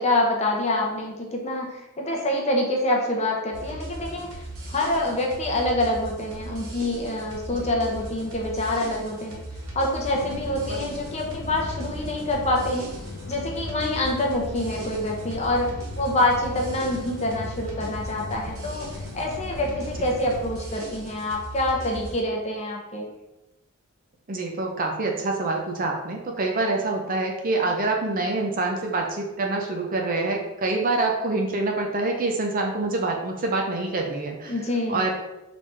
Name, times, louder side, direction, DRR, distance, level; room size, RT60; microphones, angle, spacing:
voice 1, 0.0-9.4 9.7-12.9 13.3-23.1 34.5-35.0, left 1 dB, 30° left, 0 dB, 0.7 m, -26 dB
sound 1, 3.5-22.2, right 1 dB, 65° right, 0.9 m, -38 dB
sound 2, 10.1-20.5, left 3 dB, 70° left, 0.4 m, -39 dB
voice 2, 24.3-34.5 34.9-35.1, right 2 dB, 40° right, 2 dB, 0.5 m, -26 dB
3.9 x 3.3 x 3.3 m, 0.98 s
head